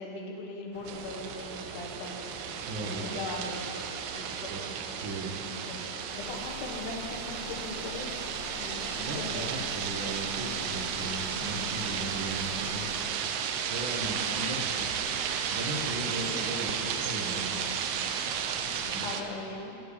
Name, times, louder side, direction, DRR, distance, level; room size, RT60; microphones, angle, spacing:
voice 1, 0.0-2.2 2.8-3.8 4.1-4.8 5.7-5.8 6.1-8.1 8.5-9.5 14.6-14.8 18.9-19.8, left 3 dB, 80° left, 1 dB, 2.7 m, -40 dB
sound 1, 0.7-18.9, equal, 45° right, 1.5 m, -47 dB
sound 2, 0.8-19.2, right 8 dB, 80° right, 1.9 m, -34 dB
voice 2, 2.7-3.2 4.4-4.6 5.0-5.3 9.0-12.8 13.7-14.7 15.1-15.2 15.5-17.6 18.9-19.1, right 1 dB, 65° right, -5 dB, 1.3 m, -37 dB
Car / Engine, 6.1-13.1, left 5 dB, 60° left, 2.1 m, -45 dB
9.8 x 8.5 x 7.1 m, 2.8 s
omnidirectional pair, 3.6 m